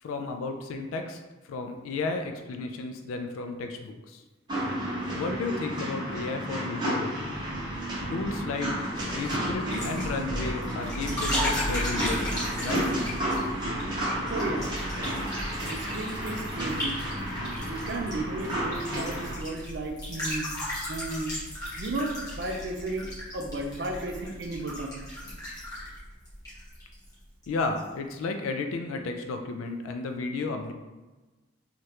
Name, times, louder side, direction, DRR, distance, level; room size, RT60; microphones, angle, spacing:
voice 1, 0.0-4.2 5.1-7.4 8.1-8.7 9.1-12.9 27.5-30.7, left 3 dB, 90° left, 5 dB, 0.3 m, -33 dB
sound 1, 4.5-19.3, right 1 dB, 20° right, 0.8 m, -32 dB
sound 2, 8.8-27.1 27.4-27.8, equal, 15° left, 1.0 m, -35 dB
voice 2, 14.3-14.7 15.7-17.0 17.6-20.5 20.9-21.4 21.8-25.0, right 2 dB, 55° right, 2 dB, 0.4 m, -34 dB
3.1 x 2.4 x 2.8 m, 1.2 s
head